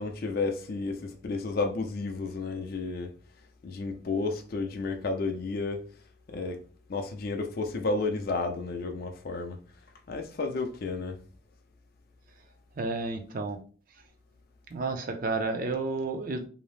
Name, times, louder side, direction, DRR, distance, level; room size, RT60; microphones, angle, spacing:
voice 1, 0.0-3.1 3.6-5.8 6.3-6.6 6.9-9.6 10.1-11.2, left 3 dB, 50° left, 0.4 m, -32 dB
voice 2, 12.8-13.6 14.7-16.4, right 3 dB, 45° right, 0.5 m, -31 dB
2.7 x 2.0 x 3.1 m
head